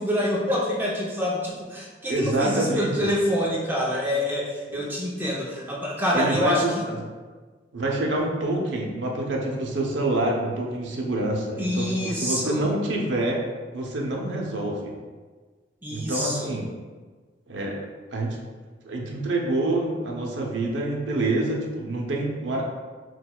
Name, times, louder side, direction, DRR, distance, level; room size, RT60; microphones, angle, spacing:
voice 1, 0.0-6.6 11.6-12.7 15.8-16.6, equal, 10° right, -4 dB, 0.5 m, -26 dB
voice 2, 2.1-2.9 6.1-7.0 7.7-13.4 13.7-14.9 15.9-16.7 17.5-17.8 18.1-18.4 18.8-22.6, right 2 dB, 80° right, -1 dB, 0.7 m, -26 dB
6.0 x 2.3 x 2.3 m, 1.4 s
head